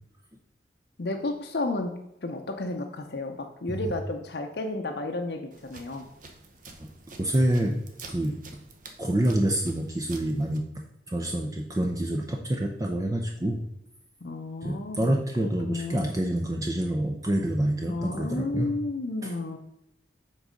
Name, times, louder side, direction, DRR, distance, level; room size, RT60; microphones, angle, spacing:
voice 1, 1.0-1.9 2.2-6.1 14.2-15.2 15.6-16.1 17.9-19.6, left 2 dB, 65° left, 3 dB, 0.7 m, -32 dB
sound 1, 5.5-10.6, right 3 dB, 50° right, 0.9 m, -49 dB
voice 2, 7.2-7.8 8.1-8.4 9.0-10.6 11.1-13.6 14.6-18.7 19.2-19.4, right 1 dB, 20° right, 2 dB, 0.6 m, -27 dB
7.4 x 4.0 x 5.1 m, 0.83 s
head